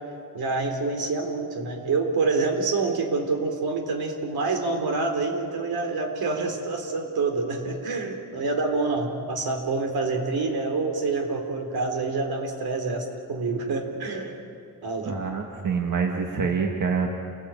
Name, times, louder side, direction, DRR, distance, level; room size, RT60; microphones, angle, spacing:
voice 1, 0.3-14.4 14.8-15.1, right 3 dB, 80° right, 3 dB, 3.8 m, -27 dB
voice 2, 15.1-17.1, right 5 dB, 55° right, 1 dB, 2.0 m, -26 dB
28.5 x 18.5 x 9.1 m, 2.6 s
wide cardioid pair, 130°, 36 cm